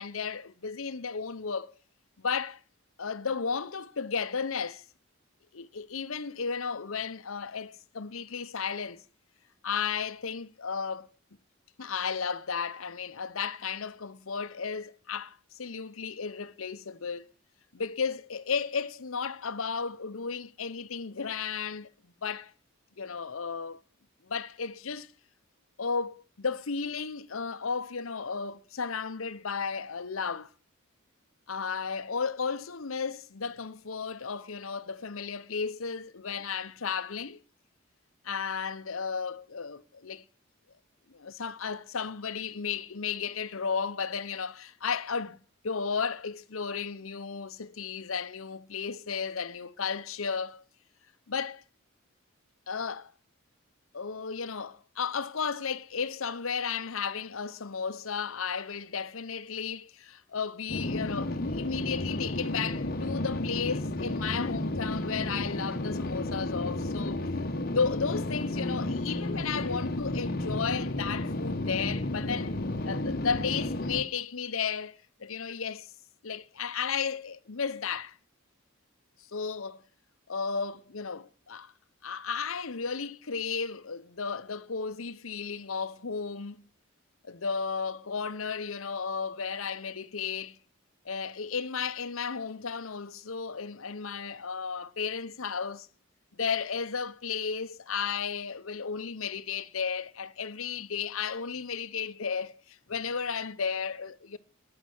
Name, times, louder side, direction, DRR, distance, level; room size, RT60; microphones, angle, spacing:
voice 1, 0.0-1.7 2.2-2.6 3.0-4.8 5.5-9.0 9.6-11.1 11.8-17.2 17.7-22.5 23.0-23.8 24.2-25.1 25.8-30.5 31.5-37.4 38.2-40.2 41.1-45.4 45.6-50.6 51.3-51.6 52.7-53.1 53.9-67.2 67.7-72.5 72.8-75.9 76.2-78.2 79.3-79.8 80.3-81.7 82.0-86.7 87.2-90.6 91.0-95.9 96.3-104.4, left 5 dB, 75° left, 0.9 m, -34 dB
sound 1, 60.7-74.0, left 1 dB, 45° left, 1.3 m, -32 dB
11.0 x 9.6 x 7.9 m
head